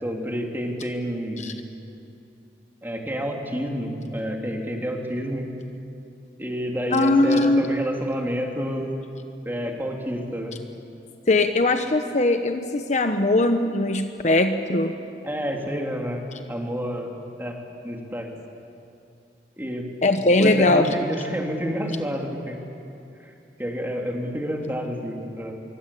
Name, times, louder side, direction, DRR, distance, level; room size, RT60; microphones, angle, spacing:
voice 1, 0.0-1.5 2.8-5.5 6.4-9.0 9.4-10.6 15.2-17.1 17.4-17.6 17.8-18.3 19.6-19.9 20.4-22.6 23.2-23.3 23.6-25.5, equal, 10° right, 1 dB, 3.0 m, -29 dB
voice 2, 6.9-7.6 11.3-15.0 20.0-20.9, left 2 dB, 40° left, 7 dB, 1.0 m, -20 dB
25.0 x 23.5 x 8.5 m, 2.7 s
head